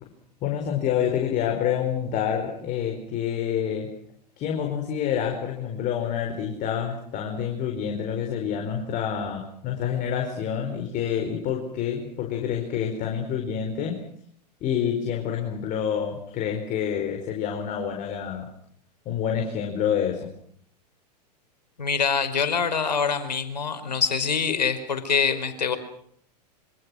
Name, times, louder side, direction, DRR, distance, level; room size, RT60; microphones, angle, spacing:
voice 1, 0.4-3.9 4.4-14.0 14.6-18.5 19.0-20.3, left 8 dB, 35° left, 2 dB, 4.8 m, -27 dB
voice 2, 21.8-25.8, left 6 dB, 80° left, 9 dB, 4.5 m, -25 dB
26.5 x 26.0 x 6.3 m, 0.65 s
figure-of-eight pair, 95°, 21 cm